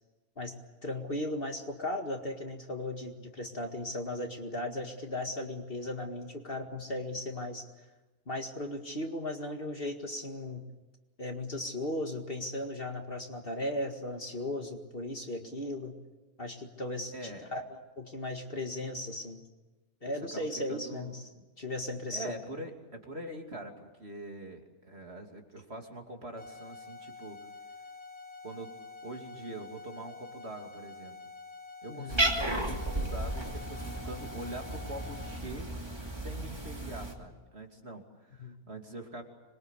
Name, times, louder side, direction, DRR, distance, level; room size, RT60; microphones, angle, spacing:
voice 1, 0.8-7.7 8.3-10.6 11.2-16.0 16.4-19.4 20.0-21.2 21.6-22.4 31.9-32.2 38.4-38.6, left 1 dB, 40° left, 4 dB, 2.2 m, -36 dB
voice 2, 17.1-17.5 20.0-21.5 22.1-27.4 28.4-28.8 29.0-31.2 31.8-35.7 36.1-39.2, right 1 dB, 45° right, 2 dB, 3.2 m, -44 dB
sound 1, 26.4-35.4, left 4 dB, 5° left, 6.1 m, -48 dB
Cat, 32.1-37.1, right 1 dB, 15° right, 2.8 m, -34 dB
26.0 x 22.0 x 8.3 m, 1.2 s
omnidirectional pair, 1.6 m